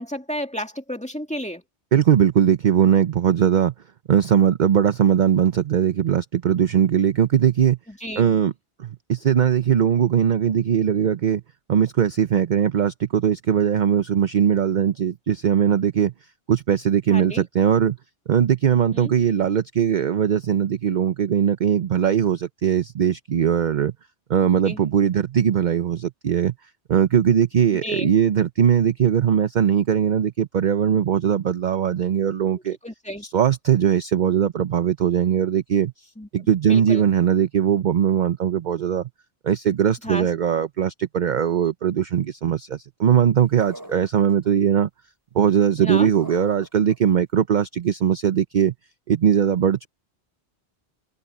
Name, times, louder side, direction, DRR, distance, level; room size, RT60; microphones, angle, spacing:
voice 1, 0.0-1.6 7.9-8.3 17.1-17.4 18.9-19.1 24.6-24.8 27.8-28.1 32.7-33.2 36.2-36.3 36.6-37.1 40.0-40.3 45.8-46.1, equal, 5° left, 2.3 m, -32 dB
voice 2, 1.9-3.7 4.1-7.8 8.2-8.5 8.8-11.4 11.7-16.1 16.5-18.0 18.3-23.9 24.3-26.5 26.9-32.8 33.2-35.9 36.3-39.0 39.4-44.9 45.3-48.7 49.1-49.9, right 8 dB, 50° right, 0.7 m, -20 dB
sound 1, 43.6-44.5 46.2-47.1, right 1 dB, 20° right, 4.4 m, -41 dB
omnidirectional pair, 1.2 m